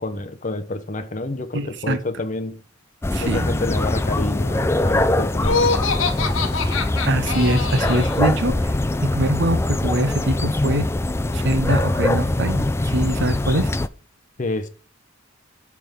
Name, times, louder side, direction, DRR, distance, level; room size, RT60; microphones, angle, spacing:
voice 1, 0.0-2.6 3.2-5.7 14.4-14.7, left 2 dB, 40° left, 0.8 m, -28 dB
voice 2, 1.5-2.0 3.1-3.5 7.1-8.7 9.0-10.9 11.3-13.7, right 1 dB, 60° right, 0.9 m, -23 dB
sound 1, 3.0-13.9, left 1 dB, 15° left, 0.3 m, -22 dB
Laughter, 5.4-8.2, left 4 dB, 70° left, 1.1 m, -24 dB
8.6 x 3.7 x 5.7 m
head